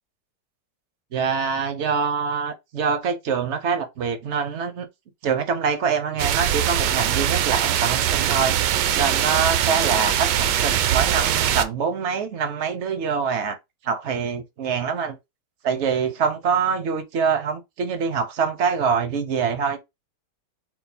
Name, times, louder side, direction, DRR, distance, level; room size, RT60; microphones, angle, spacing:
voice 1, 1.1-4.9 5.2-8.6 8.9-13.6 13.8-15.2 15.6-19.8, right 6 dB, 60° right, 0.7 m, -25 dB
sound 1, 6.2-11.6, right 10 dB, 80° right, 1.2 m, -22 dB
4.6 x 2.0 x 4.1 m
omnidirectional pair, 1.9 m